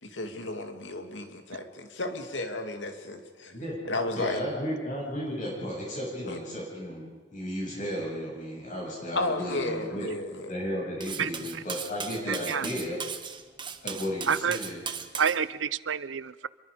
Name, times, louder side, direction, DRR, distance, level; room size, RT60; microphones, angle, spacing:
voice 1, 0.0-3.5 3.9-4.4 6.2-6.4 9.2-10.6, left 2 dB, 75° left, 6 dB, 2.5 m, -33 dB
voice 2, 4.1-10.0 10.3-13.0 13.8-14.8, equal, 45° left, -4 dB, 7.3 m, -34 dB
Cutlery silverware, 11.0-15.4, right 6 dB, 25° right, 1.2 m, -37 dB
voice 3, 11.2-11.6 12.3-12.7 14.3-14.6 15.2-16.5, right 7 dB, 85° right, 18 dB, 0.7 m, -29 dB
27.0 x 23.0 x 5.1 m, 1.3 s
head